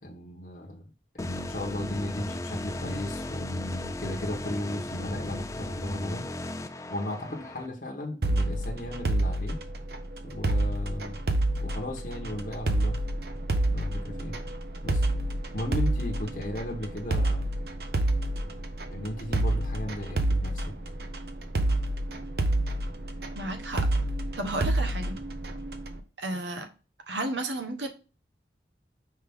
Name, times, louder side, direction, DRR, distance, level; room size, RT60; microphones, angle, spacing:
voice 1, 0.0-6.3 6.9-9.6 10.2-11.2 11.6-13.0 13.7-14.4 14.8-15.1 15.5-17.5 18.9-20.7, left 1 dB, 45° left, 1.1 m, -35 dB
sound 1, 1.2-7.7, left 2 dB, 15° left, 0.3 m, -36 dB
sound 2, 8.2-26.0, right 1 dB, 55° right, 0.8 m, -29 dB
voice 2, 23.4-23.9 24.4-25.2 26.2-26.7 27.1-27.9, right 1 dB, 80° right, 1.2 m, -32 dB
5.6 x 4.9 x 3.5 m
head